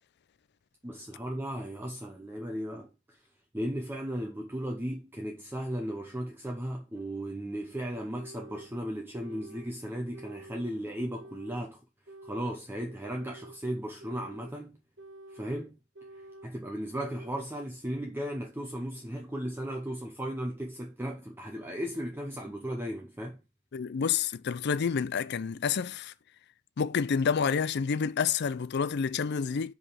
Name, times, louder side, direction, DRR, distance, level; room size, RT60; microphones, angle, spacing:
voice 1, 0.8-2.9 3.5-11.8 12.2-14.8 15.3-15.8 16.4-23.4, equal, 10° right, 0.8 m, -36 dB
sound 1, 5.9-6.1 6.9-7.1 7.9-8.7 9.1-9.7 10.1-10.7 11.1-11.7 12.1-12.6 13.0-13.6 14.0-14.6 15.0-15.5 16.0-16.5 16.9-17.5, right 1 dB, 60° right, 1.3 m, -49 dB
voice 2, 23.7-26.1 26.8-29.7, left 6 dB, 55° left, 0.5 m, -29 dB
5.0 x 4.9 x 5.6 m
head